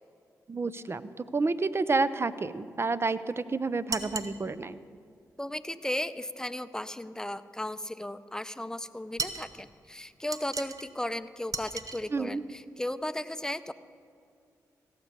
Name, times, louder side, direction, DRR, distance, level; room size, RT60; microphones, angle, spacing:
voice 1, 0.5-4.8 12.1-12.4, right 3 dB, 35° right, 15 dB, 0.6 m, -29 dB
sound 1, 3.9-4.4 9.2-9.5 10.3-10.9 11.5-12.0, right 4 dB, 55° right, 1.0 m, -35 dB
voice 2, 5.4-13.7, left 1 dB, 10° left, 13 dB, 0.6 m, -35 dB
16.5 x 7.4 x 6.8 m, 2.3 s
supercardioid pair, 45°, 7 cm